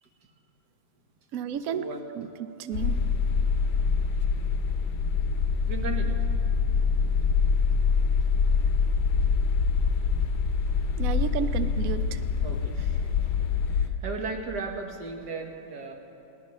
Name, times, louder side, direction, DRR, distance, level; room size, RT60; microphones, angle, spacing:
voice 1, 0.0-0.3 1.6-2.1 5.7-6.2 11.4-11.5 12.4-13.1 13.4-15.9, right 3 dB, 60° right, 3 dB, 1.8 m, -36 dB
voice 2, 1.3-1.8 2.2-2.3 2.6-3.0 11.0-12.2, right 8 dB, 85° right, 11 dB, 0.7 m, -31 dB
sound 1, 2.7-13.9, left 5 dB, 65° left, 1.1 m, -25 dB
21.5 x 17.5 x 3.2 m, 2.7 s
omnidirectional pair, 2.1 m